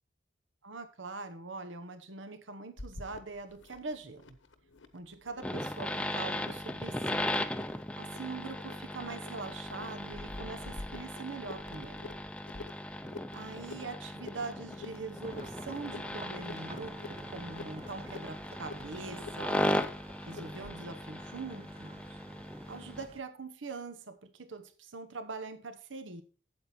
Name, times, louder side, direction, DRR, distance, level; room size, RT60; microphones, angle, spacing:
voice 1, 0.6-4.4 4.9-7.2 8.0-12.1 13.3-19.9 20.3-22.2 22.7-26.2, right 3 dB, 80° right, 1.1 m, -43 dB
sound 1, 2.8-20.8, left 3 dB, 85° left, 1.1 m, -49 dB
sound 2, 5.4-23.1, left 1 dB, 5° left, 0.5 m, -38 dB
sound 3, 15.2-23.2, right 2 dB, 30° right, 0.7 m, -51 dB
8.7 x 8.0 x 4.4 m
head